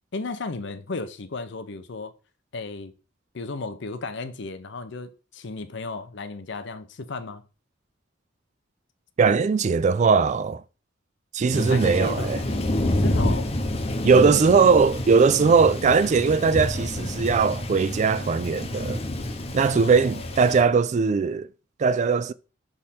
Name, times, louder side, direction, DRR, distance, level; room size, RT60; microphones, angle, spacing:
voice 1, 0.1-2.1 2.5-2.9 3.3-7.4 11.7-13.5 14.1-14.5 19.7-20.3, left 3 dB, 70° left, 0.7 m, -34 dB
voice 2, 9.2-10.6 11.3-12.4 14.0-19.0 19.5-21.5 21.8-22.3, right 5 dB, 40° right, 0.3 m, -20 dB
Thunder, 11.5-20.6, left 1 dB, 35° left, 0.8 m, -28 dB
6.3 x 3.7 x 4.2 m
head